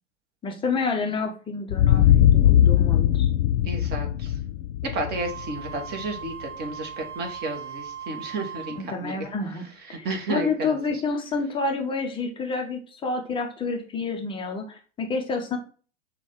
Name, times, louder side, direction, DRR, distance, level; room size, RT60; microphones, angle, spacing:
voice 1, 0.4-3.3 8.7-9.7 10.0-15.6, left 4 dB, 15° left, 3 dB, 0.6 m, -29 dB
sound 1, 1.7-6.3, left 11 dB, 60° left, 0.5 m, -20 dB
voice 2, 3.6-4.3 4.9-9.2 9.9-10.8, right 2 dB, 25° right, 3 dB, 1.0 m, -32 dB
Wind instrument woodwind instrument, 5.1-8.9, right 7 dB, 65° right, 0.7 m, -39 dB
6.1 x 2.3 x 3.4 m, 0.40 s
hypercardioid pair, 105°, 38 cm